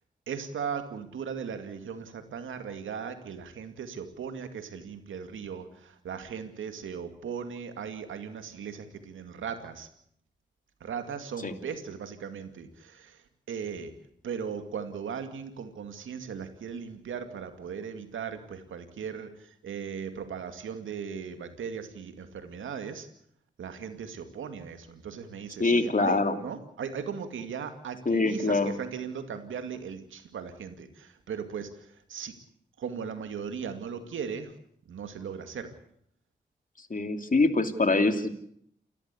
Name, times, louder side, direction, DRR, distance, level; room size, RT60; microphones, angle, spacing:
voice 1, 0.3-9.9 10.8-13.9 14.2-23.1 23.6-32.3 32.8-34.5 34.9-35.7, right 7 dB, 90° right, 8 dB, 2.3 m, -38 dB
voice 2, 25.6-26.4 28.1-28.7 36.9-38.3, left 3 dB, 45° left, 7 dB, 3.0 m, -24 dB
29.0 x 13.5 x 8.5 m, 0.69 s
supercardioid pair, 40°, 20 cm